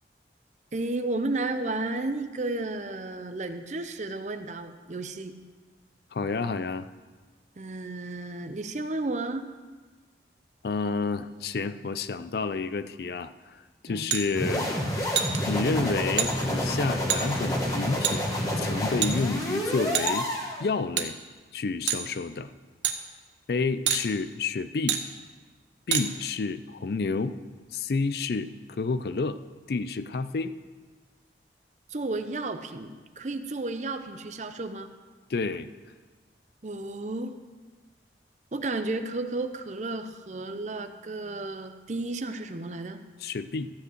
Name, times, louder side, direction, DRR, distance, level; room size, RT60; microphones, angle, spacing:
voice 1, 0.7-5.4 7.6-9.5 13.9-14.0 31.9-34.9 36.6-37.4 38.5-43.0, right 2 dB, 40° right, 9 dB, 0.6 m, -33 dB
voice 2, 6.1-6.9 10.6-14.7 15.0-15.2 15.5-18.3 18.6-20.3 20.6-21.2 21.5-22.5 23.5-25.0 25.9-27.4 27.7-29.4 29.7-30.5 35.3-35.7 43.2-43.7, left 4 dB, 60° left, 13 dB, 0.4 m, -29 dB
sound 1, 14.1-14.2 15.1-15.4 16.2-16.3 17.1-17.2 18.0-18.2 19.0-19.4 19.9-20.3 21.0-21.1 21.9-22.1 22.8-23.0 23.9-24.0 24.9-25.0 25.9-26.0, right 9 dB, 80° right, 0.8 m, -26 dB
sound 2, 14.3-20.6, equal, 20° left, 1.4 m, -29 dB
13.5 x 5.2 x 7.9 m, 1.4 s
head